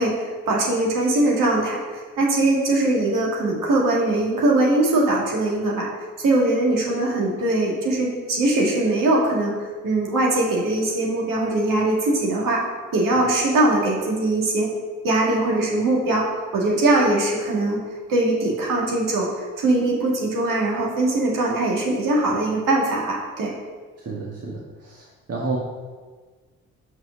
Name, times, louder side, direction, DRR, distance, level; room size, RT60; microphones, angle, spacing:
voice 1, 0.0-5.9 6.2-9.6 9.8-12.6 12.9-14.7 15.0-17.8 18.1-23.5, right 2 dB, 55° right, -2 dB, 2.2 m, -21 dB
voice 2, 24.0-25.6, right 3 dB, 40° right, -3 dB, 1.5 m, -31 dB
5.8 x 5.8 x 6.0 m, 1.4 s
figure-of-eight pair, 40°, 38 cm